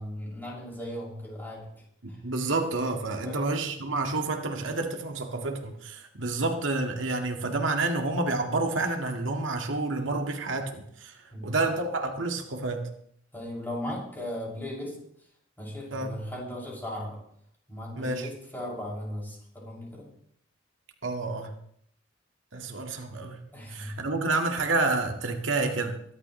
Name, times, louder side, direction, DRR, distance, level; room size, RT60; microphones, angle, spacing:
voice 1, 0.0-1.7 2.1-2.2 3.2-3.5 11.3-11.6 13.3-15.0 15.6-17.2 17.7-20.1 23.5-24.1, left 1 dB, 10° left, -4 dB, 6.5 m, -37 dB
voice 2, 2.0-11.2 11.4-12.9 15.9-16.1 17.9-18.3 21.0-21.5 22.5-23.4 23.7-26.0, right 3 dB, 80° right, 3 dB, 1.9 m, -29 dB
23.0 x 12.0 x 3.2 m, 0.68 s
head